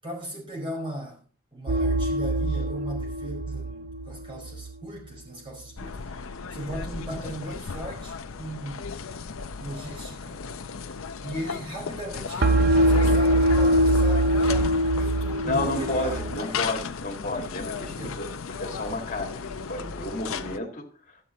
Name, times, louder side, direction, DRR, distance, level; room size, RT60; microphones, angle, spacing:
voice 1, 0.0-1.2 1.5-9.1 9.6-10.4 11.2-16.7 17.8-18.2, right 1 dB, 25° right, 4.6 m, -38 dB
sound 1, 1.7-4.8 12.4-16.4, right 1 dB, 50° right, 0.7 m, -23 dB
sound 2, 5.8-20.6, left 5 dB, 70° left, 0.6 m, -35 dB
voice 2, 15.4-18.3 18.6-20.9, left 2 dB, 35° left, 1.9 m, -31 dB
12.0 x 8.6 x 4.2 m
head